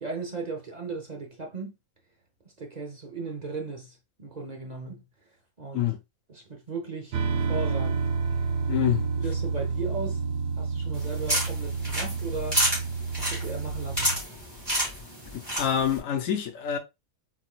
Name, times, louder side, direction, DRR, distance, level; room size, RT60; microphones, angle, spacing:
voice 1, 0.0-1.7 2.6-5.0 5.6-5.9 6.3-8.0 9.2-10.2 10.6-12.6 13.2-14.1, right 4 dB, 40° right, 0.8 m, -36 dB
sound 1, 7.1-14.2, right 4 dB, 70° right, 1.0 m, -29 dB
voice 2, 8.7-9.0 15.3-16.8, left 10 dB, 75° left, 1.1 m, -26 dB
sound 2, 10.9-16.0, equal, 15° right, 2.5 m, -30 dB
4.7 x 3.8 x 2.2 m
omnidirectional pair, 1.4 m